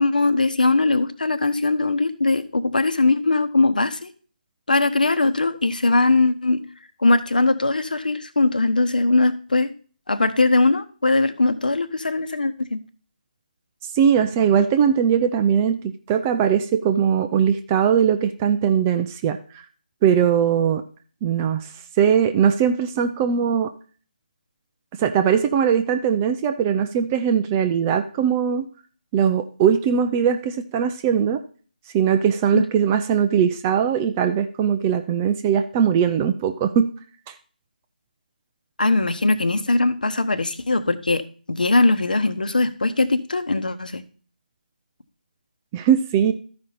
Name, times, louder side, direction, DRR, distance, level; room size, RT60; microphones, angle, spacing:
voice 1, 0.0-4.1 4.7-6.6 7.0-9.7 10.1-12.8 32.5-32.6 38.8-41.2 41.5-44.0, left 2 dB, 60° left, 12 dB, 1.0 m, -20 dB
voice 2, 13.9-15.8 16.1-19.4 20.0-20.8 21.2-21.7 22.0-23.7 25.0-28.7 29.1-31.4 31.9-36.9 37.3-37.4 45.7-46.3, right 8 dB, 10° right, 7 dB, 0.3 m, -20 dB
13.5 x 5.2 x 4.1 m, 0.41 s
figure-of-eight pair, 155°, 5 cm